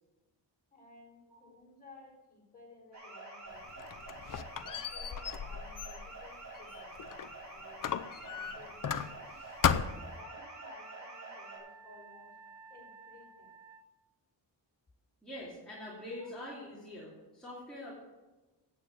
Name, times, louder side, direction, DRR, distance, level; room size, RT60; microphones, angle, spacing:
voice 1, 0.7-3.7 4.6-8.0 8.3-9.3 10.0-12.4 12.7-13.5 16.2-16.3, left 3 dB, 20° left, -3 dB, 4.6 m, -57 dB
sound 1, 2.9-11.6, right 2 dB, 40° right, 4.1 m, -48 dB
Squeak, 3.5-7.4 7.8-9.3 9.6-10.2, left 8 dB, 45° left, 0.6 m, -35 dB
Wind instrument woodwind instrument, 9.0-13.9, right 5 dB, 85° right, 1.2 m, -54 dB
voice 2, 15.2-17.9, left 1 dB, ahead, -8 dB, 2.8 m, -44 dB
9.6 x 8.5 x 6.5 m, 1.2 s
wide cardioid pair, 145°, 44 cm